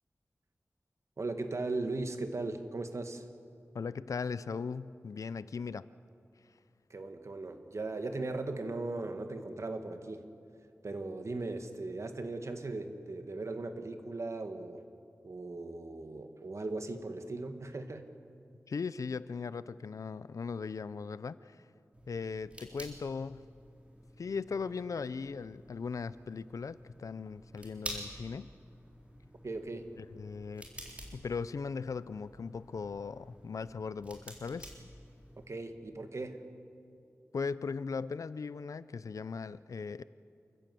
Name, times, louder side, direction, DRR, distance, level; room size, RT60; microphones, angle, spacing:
voice 1, 1.2-3.2 6.9-10.3 10.8-14.8 15.2-18.1 29.4-29.9 35.5-36.4, right 2 dB, 65° right, 7 dB, 1.8 m, -38 dB
voice 2, 3.7-5.9 18.7-21.6 22.1-23.5 24.2-28.5 30.0-30.7 31.1-34.7 37.3-40.0, left 5 dB, 85° left, 16 dB, 0.5 m, -38 dB
sound 1, 21.9-35.5, equal, 25° right, 3.9 m, -50 dB
27.5 x 15.0 x 7.7 m, 2.5 s
wide cardioid pair, 80°, 5 cm